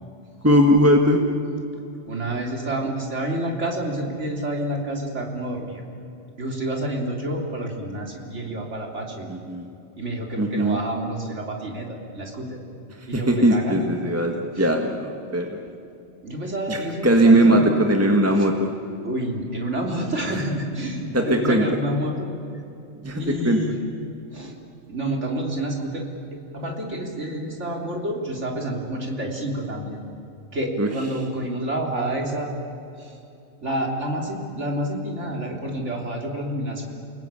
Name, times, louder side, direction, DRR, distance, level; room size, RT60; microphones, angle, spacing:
voice 1, 0.4-1.2 9.3-9.7 10.4-10.8 13.0-15.5 16.7-18.7 21.1-21.6 23.0-23.6 30.8-30.9, right 1 dB, 10° right, 2 dB, 1.6 m, -19 dB
voice 2, 2.0-5.8 6.4-9.3 10.0-12.6 13.1-13.9 14.5-14.7 16.2-17.9 18.4-18.5 19.0-22.3 23.1-23.8 24.3-24.5 24.9-26.1 26.5-30.0 30.5-32.5 33.0-33.2 33.6-36.9, right 1 dB, 90° right, 1 dB, 3.9 m, -29 dB
29.0 x 19.5 x 9.0 m, 2.8 s
omnidirectional pair, 1.2 m